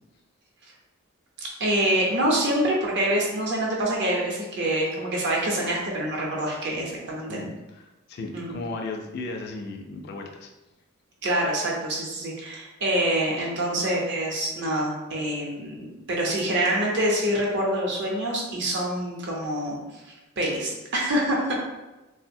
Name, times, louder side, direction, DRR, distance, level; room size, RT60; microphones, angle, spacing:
voice 1, 1.6-7.4 8.3-8.6 11.2-21.7, right 1 dB, 55° right, -2 dB, 0.7 m, -26 dB
voice 2, 7.3-7.8 8.1-10.5 13.4-13.5, left 3 dB, 50° left, 3 dB, 0.3 m, -35 dB
3.1 x 2.0 x 2.6 m, 1.0 s
head